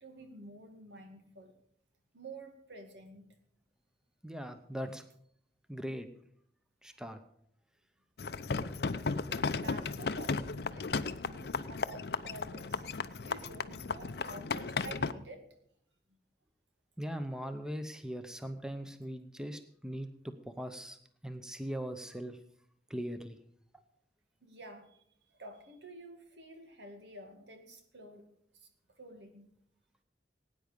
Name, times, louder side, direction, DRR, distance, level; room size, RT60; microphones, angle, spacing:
voice 1, 0.0-1.5 2.1-3.3 9.5-10.9 11.2-12.8 13.2-15.5 24.4-25.0 25.3-28.3 28.5-29.5, right 2 dB, 85° right, 5 dB, 2.2 m, -50 dB
voice 2, 4.2-5.0 5.7-6.1 6.8-7.2 17.0-21.0 21.2-22.4 22.9-23.4, equal, 5° right, 8 dB, 0.7 m, -40 dB
sound 1, 8.2-15.1, left 4 dB, 65° left, 0.6 m, -35 dB
18.0 x 9.4 x 5.2 m, 0.70 s
head